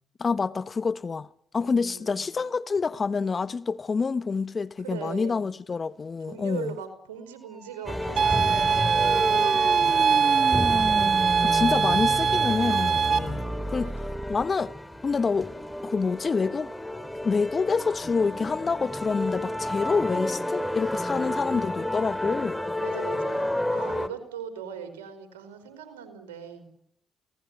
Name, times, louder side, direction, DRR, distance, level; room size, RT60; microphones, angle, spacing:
voice 1, 0.2-1.3 1.5-6.8 11.4-14.7 15.0-15.5 15.8-16.7 17.2-22.6, left 4 dB, 40° left, 1.2 m, -27 dB
voice 2, 1.6-2.4 4.8-5.5 6.3-10.8 13.2-14.3 21.1-22.0 22.8-26.7, right 7 dB, 90° right, 4.8 m, -41 dB
sound 1, 7.5-14.4, right 1 dB, 15° right, 1.7 m, -33 dB
sound 2, 7.9-24.1, left 1 dB, 5° left, 2.8 m, -32 dB
sound 3, 8.2-13.2, right 6 dB, 55° right, 1.8 m, -22 dB
29.0 x 19.0 x 9.7 m
hypercardioid pair, 50°, 0 cm